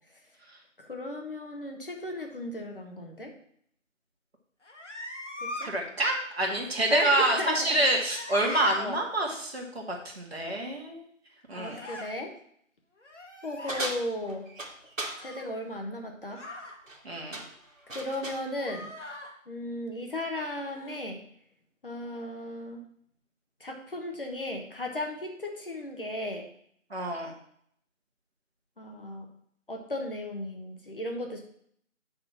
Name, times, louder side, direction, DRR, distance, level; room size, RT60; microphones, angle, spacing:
voice 1, 0.8-3.3 5.4-5.7 6.9-7.8 8.4-9.0 11.5-12.3 13.4-14.5 15.2-16.4 17.9-18.9 19.5-21.2 21.8-22.8 23.6-26.5 28.8-29.3 29.7-31.4, left 1 dB, 40° left, 2 dB, 1.3 m, -35 dB
sound 1, 4.6-5.7 7.4-8.8 11.7-12.1 13.0-13.9 15.2-15.6 16.3-16.8 18.5-19.3 20.6-21.1, left 1 dB, 60° left, 1.7 m, -41 dB
voice 2, 5.6-9.8 10.2-11.0 11.5-11.8 17.0-17.4 26.9-27.3, right 1 dB, 50° right, 0 dB, 2.1 m, -27 dB
sound 2, 13.7-15.2 16.7-17.0 17.3-18.5, right 2 dB, 70° right, 2.0 m, -37 dB
8.7 x 4.2 x 6.0 m, 0.66 s
figure-of-eight pair, 165°, 40 cm